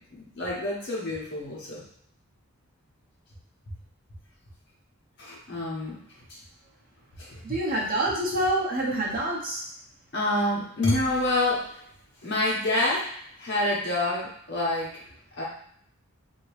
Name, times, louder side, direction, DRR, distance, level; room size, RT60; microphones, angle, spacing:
voice 1, 0.0-1.9 5.2-6.0 6.3-6.4 7.2-7.6 10.1-11.8 12.2-15.0 15.4-15.5, left 1 dB, 55° left, -5 dB, 1.1 m, -28 dB
voice 2, 7.4-9.6, right 1 dB, 40° right, -3 dB, 0.8 m, -27 dB
2.9 x 2.7 x 3.1 m, 0.66 s
head